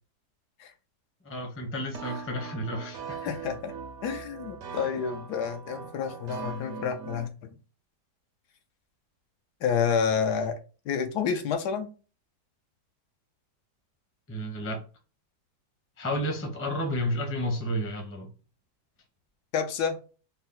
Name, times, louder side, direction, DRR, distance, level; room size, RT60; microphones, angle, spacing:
voice 1, 1.2-3.0 14.3-14.8 16.0-18.3, equal, 10° left, 0.6 m, -31 dB
sound 1, 1.9-7.3, right 5 dB, 65° right, 1.1 m, -40 dB
voice 2, 3.1-3.7 4.0-7.5 9.6-10.6 10.9-11.9 19.5-20.0, left 6 dB, 75° left, 1.2 m, -29 dB
4.1 x 2.0 x 3.8 m
omnidirectional pair, 1.8 m